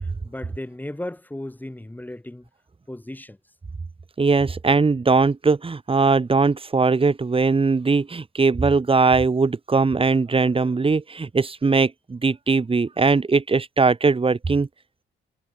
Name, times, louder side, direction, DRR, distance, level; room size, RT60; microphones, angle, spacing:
voice 1, 0.2-2.5 2.9-3.4, left 1 dB, 10° left, 4.1 m, -35 dB
voice 2, 4.2-14.7, right 4 dB, 25° right, 4.0 m, -20 dB
cardioid pair, 90°, 20 cm